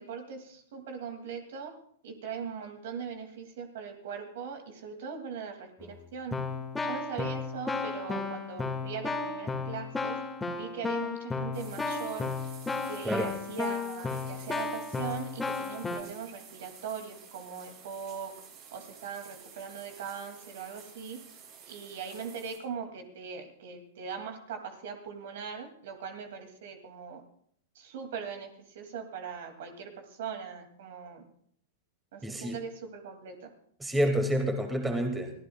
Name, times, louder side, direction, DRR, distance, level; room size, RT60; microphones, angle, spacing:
voice 1, 0.0-1.7 2.0-6.4 6.8-10.2 10.5-12.3 12.8-18.3 18.7-21.2 21.6-27.2 27.8-28.5 28.7-31.2 32.1-33.5, right 6 dB, 65° right, 5 dB, 2.5 m, -40 dB
Keyboard (musical), 5.8-6.0 6.3-16.0, left 4 dB, 10° left, 2.0 m, -34 dB
sound 1, 11.5-22.6, right 7 dB, 45° right, 7.7 m, -52 dB
voice 2, 32.2-32.6 33.8-35.3, equal, 10° right, 4 dB, 2.2 m, -28 dB
25.0 x 15.5 x 2.4 m, 0.64 s
hypercardioid pair, 115°, 0 cm